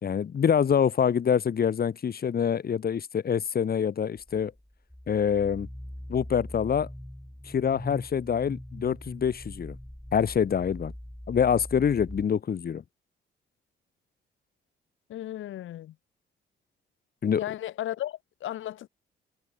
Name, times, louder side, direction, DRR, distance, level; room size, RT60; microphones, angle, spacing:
voice 1, 0.0-4.5 5.1-5.7 6.1-6.9 7.5-9.8 10.1-10.9 11.3-12.8 17.2-17.4, left 7 dB, 50° left, 3.5 m, -25 dB
sound 1, 4.1-12.2, equal, 5° left, 5.8 m, -42 dB
voice 2, 15.1-16.0 17.4-18.9, left 13 dB, 80° left, 5.6 m, -35 dB
cardioid pair, 90°, 20 cm